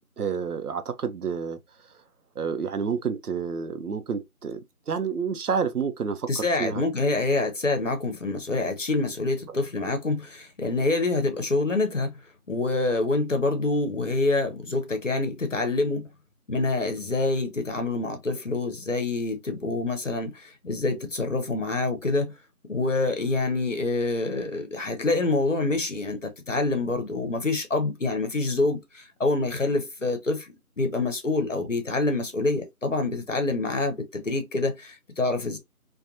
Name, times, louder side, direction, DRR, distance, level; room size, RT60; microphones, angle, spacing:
voice 1, 0.2-1.6 2.4-6.8, right 6 dB, 75° right, 0.6 m, -29 dB
voice 2, 6.3-12.1 12.5-16.1 16.5-22.3 22.7-35.6, left 2 dB, 55° left, 0.7 m, -26 dB
2.9 x 2.2 x 2.4 m
figure-of-eight pair, 170°, 46 cm